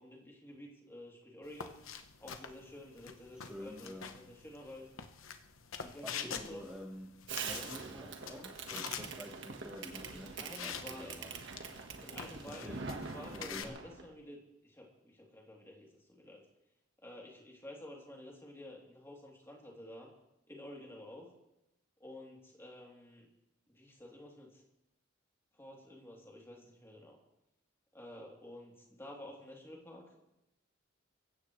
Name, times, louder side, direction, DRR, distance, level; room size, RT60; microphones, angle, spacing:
voice 1, 0.0-1.7 2.2-4.9 5.7-6.6 7.5-7.7 10.1-11.2 12.0-12.8 13.1-14.4 14.6-16.4 17.0-20.1 20.5-21.3 22.0-23.3 23.7-24.6 25.6-27.2 27.9-30.1, left 1 dB, 15° left, -2 dB, 3.2 m, -51 dB
sound 1, 1.4-13.6, left 7 dB, 85° left, 1.0 m, -47 dB
voice 2, 3.3-4.1 6.0-11.4 12.5-12.8 13.3-13.8, left 1 dB, 5° right, -2 dB, 1.4 m, -49 dB
Fireworks, 7.3-14.1, right 5 dB, 60° right, 1.5 m, -44 dB
24.0 x 15.5 x 3.3 m, 0.89 s
head